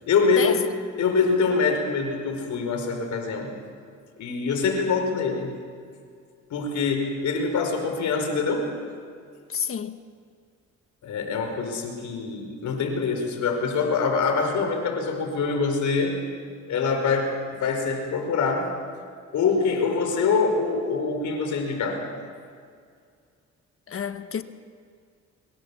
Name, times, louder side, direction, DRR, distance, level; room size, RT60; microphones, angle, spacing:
voice 1, 0.1-0.6 1.0-3.5 4.2-5.6 6.5-8.7 11.0-16.2 16.7-18.7 19.3-22.1, left 4 dB, 70° left, 5.0 m, -24 dB
voice 2, 9.5-10.0 23.9-24.4, left 7 dB, 45° left, 1.3 m, -29 dB
24.5 x 22.0 x 7.1 m
cardioid pair, 90°, 30 cm